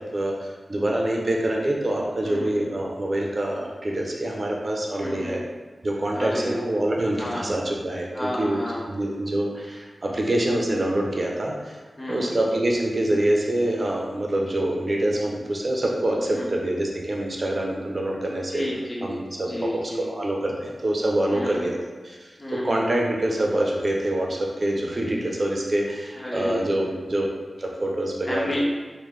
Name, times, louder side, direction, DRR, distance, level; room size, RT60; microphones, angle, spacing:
voice 1, 0.0-5.4 5.8-8.6 8.9-11.8 12.1-18.7 19.0-19.7 20.1-21.8 22.0-27.3 27.6-28.5, right 1 dB, 45° right, -1 dB, 0.6 m, -25 dB
voice 2, 2.2-2.6 5.0-5.4 6.1-6.6 7.2-7.4 8.1-8.8 12.0-12.3 16.3-16.5 18.5-20.1 21.3-21.6 22.4-22.8 26.1-26.9 28.3-28.6, left 1 dB, 35° left, -5 dB, 0.9 m, -31 dB
3.7 x 2.2 x 3.2 m, 1.4 s
wide cardioid pair, 70°, 0 cm